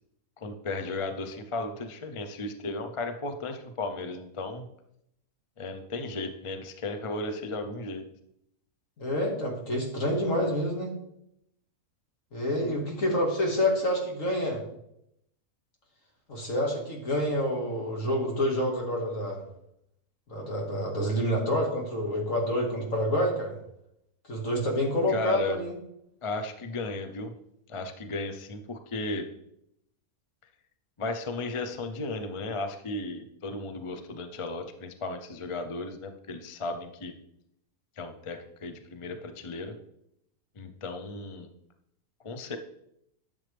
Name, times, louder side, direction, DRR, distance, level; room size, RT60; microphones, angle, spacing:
voice 1, 0.4-4.7 5.6-8.0 25.1-25.6 26.2-27.3 27.7-29.3 31.0-37.1 38.0-39.8 40.6-41.5 42.2-42.6, left 2 dB, 40° left, 7 dB, 0.4 m, -35 dB
voice 2, 9.0-10.9 12.3-14.6 16.3-19.4 20.3-23.5 24.3-25.8, equal, 60° left, 0 dB, 2.3 m, -28 dB
11.0 x 7.1 x 3.4 m, 0.78 s
omnidirectional pair, 1.6 m